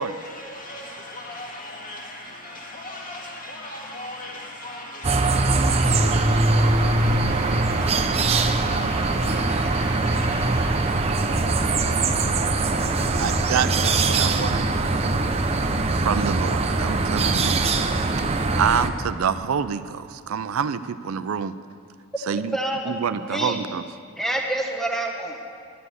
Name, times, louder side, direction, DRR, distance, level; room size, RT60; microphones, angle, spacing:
voice 1, 0.0-12.2, left 1 dB, 40° left, 2.1 m, -38 dB
sound 1, 5.0-18.9, right 3 dB, 30° right, 0.7 m, -22 dB
voice 2, 13.2-14.7 16.0-17.9 18.6-21.5 22.3-22.6 22.9-23.8, right 7 dB, 70° right, 0.4 m, -27 dB
voice 3, 22.5-22.9 23.2-23.6 24.2-25.4, right 1 dB, ahead, 1.0 m, -27 dB
11.0 x 11.0 x 8.0 m
head